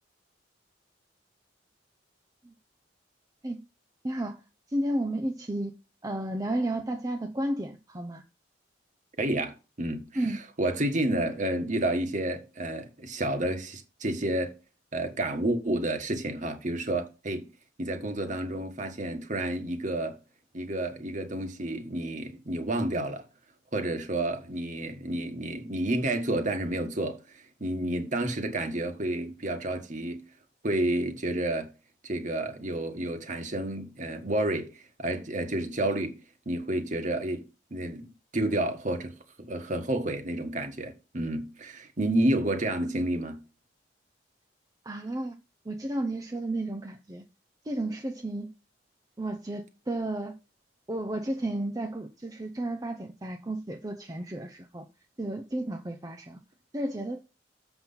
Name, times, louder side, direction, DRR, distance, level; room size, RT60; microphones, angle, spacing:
voice 1, 4.0-5.7 6.0-8.2 10.1-10.4 44.8-45.3 45.6-47.2 47.6-48.5 49.2-50.3 50.9-54.9 55.2-56.4 56.7-57.2, right 1 dB, 20° right, 0.6 m, -32 dB
voice 2, 9.2-10.1 10.6-14.5 14.9-17.4 17.8-20.2 20.5-23.2 23.7-30.2 30.6-31.7 32.0-36.2 36.4-37.4 37.7-43.4, right 1 dB, 45° right, 1.5 m, -30 dB
7.3 x 6.1 x 5.6 m
head